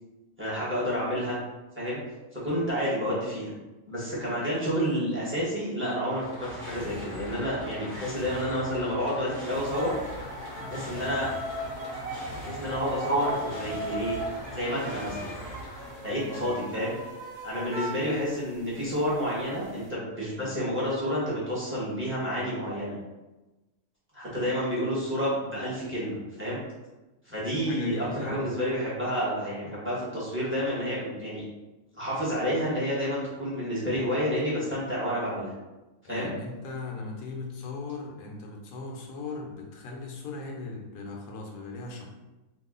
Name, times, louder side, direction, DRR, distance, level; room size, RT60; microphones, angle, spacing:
voice 1, 0.4-1.4 1.7-2.0 2.3-3.5 3.9-9.9 10.7-11.3 12.3-14.2 14.5-15.3 16.0-16.9 17.4-22.9 24.1-26.6 27.3-31.4 31.9-35.5 36.1-36.3, equal, 10° right, -8 dB, 1.0 m, -29 dB
sound 1, 5.9-16.7, left 1 dB, 20° left, 0.8 m, -41 dB
sound 2, 9.7-19.1 19.4-19.9, right 1 dB, 80° right, 1.3 m, -39 dB
voice 2, 16.3-16.6 27.4-28.6 36.0-42.1, left 3 dB, 85° left, 0 dB, 1.3 m, -38 dB
3.0 x 2.4 x 3.6 m, 1.1 s
omnidirectional pair, 1.6 m